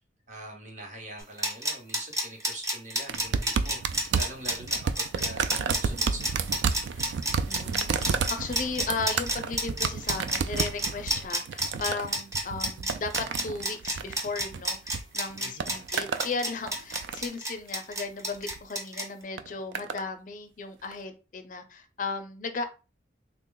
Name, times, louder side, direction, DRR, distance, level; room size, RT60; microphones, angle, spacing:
voice 1, 0.3-6.4 15.4-15.7, right 1 dB, 40° right, 2 dB, 0.9 m, -43 dB
sound 1, 1.2-19.0, right 1 dB, 20° right, 0.6 m, -30 dB
sound 2, 3.1-15.0 15.3-16.3 16.7-17.4 18.3-18.6 19.4-20.0 20.9-21.0, right 5 dB, 80° right, 0.3 m, -31 dB
voice 2, 7.5-22.6, left 4 dB, 45° left, 8 dB, 0.4 m, -36 dB
3.4 x 2.2 x 3.8 m, 0.31 s
head